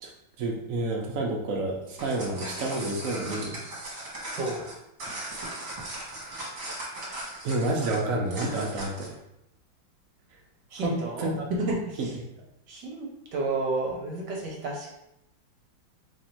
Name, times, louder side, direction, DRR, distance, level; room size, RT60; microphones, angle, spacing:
voice 1, 0.4-3.6 7.4-9.1 10.7-11.5 12.0-12.1, right 2 dB, 85° right, -1 dB, 0.7 m, -29 dB
sound 1, 1.8-9.2, right 1 dB, 50° right, 1.3 m, -38 dB
voice 2, 4.3-4.6 10.7-12.0 12.7-14.9, right 2 dB, 65° right, -1 dB, 1.2 m, -31 dB
3.1 x 2.6 x 4.3 m, 0.82 s
omnidirectional pair, 2.2 m